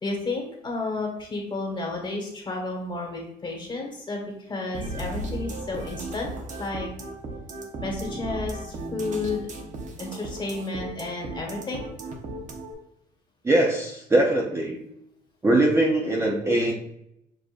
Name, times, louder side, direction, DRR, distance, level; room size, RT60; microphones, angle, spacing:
voice 1, 0.0-6.3 6.6-6.9 7.8-9.5 10.0-11.8, left 3 dB, 25° left, 0 dB, 1.3 m, -32 dB
sound 1, 4.7-12.7, right 2 dB, 45° right, 0.8 m, -35 dB
voice 2, 13.4-14.7 15.4-16.7, right 1 dB, 15° right, -1 dB, 0.6 m, -21 dB
6.9 x 2.5 x 2.5 m, 0.79 s
cardioid pair, 110°, 17 cm